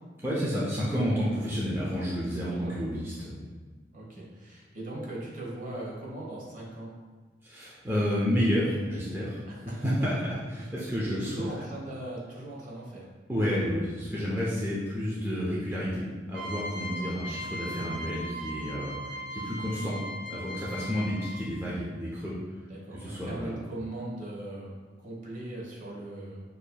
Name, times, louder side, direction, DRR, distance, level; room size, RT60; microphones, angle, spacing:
voice 1, 0.2-3.4 7.4-9.4 9.8-11.3 13.3-20.0 20.3-22.3 22.9-23.5, equal, 10° right, -7 dB, 0.6 m, -30 dB
voice 2, 3.9-6.9 9.5-9.8 11.1-13.0 17.0-17.1 22.7-24.7 25.0-26.4, right 1 dB, 45° right, -4 dB, 1.1 m, -39 dB
sound 1, 16.3-21.6, equal, 90° right, 1.4 m, -38 dB
6.5 x 2.8 x 2.2 m, 1.4 s
head